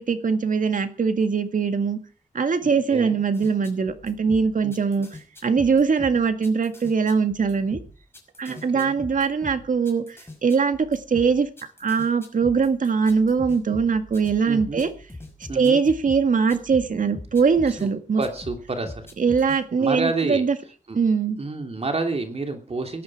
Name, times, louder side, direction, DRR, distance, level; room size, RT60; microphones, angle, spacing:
voice 1, 0.0-2.0 2.3-5.1 5.4-7.8 8.4-11.5 11.8-14.9 15.5-18.2 19.2-20.6 21.0-21.4, right 5 dB, 75° right, 9 dB, 1.9 m, -22 dB
voice 2, 2.6-3.2 4.6-4.7 8.5-9.0 14.5-14.9 15.5-15.8 17.7-17.9 18.2-19.1 19.8-20.4 20.9-21.0 21.4-23.0, right 3 dB, 50° right, 5 dB, 2.9 m, -29 dB
sound 1, 3.3-17.9 18.2-19.6, left 2 dB, 20° left, 5.6 m, -42 dB
17.5 x 13.0 x 4.8 m, 0.38 s
wide cardioid pair, 120°, 14 cm